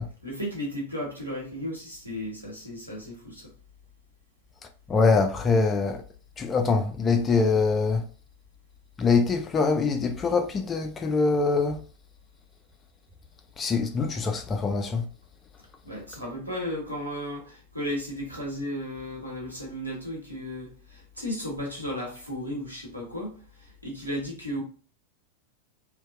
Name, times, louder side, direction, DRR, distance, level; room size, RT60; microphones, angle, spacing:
voice 1, 0.2-3.5 15.8-24.6, equal, 85° right, 0.9 m, -34 dB
voice 2, 4.9-6.0 6.4-8.0 9.0-11.8 13.6-15.1, left 4 dB, 20° left, 0.4 m, -24 dB
2.8 x 2.0 x 2.4 m
figure-of-eight pair, 90°, 0 cm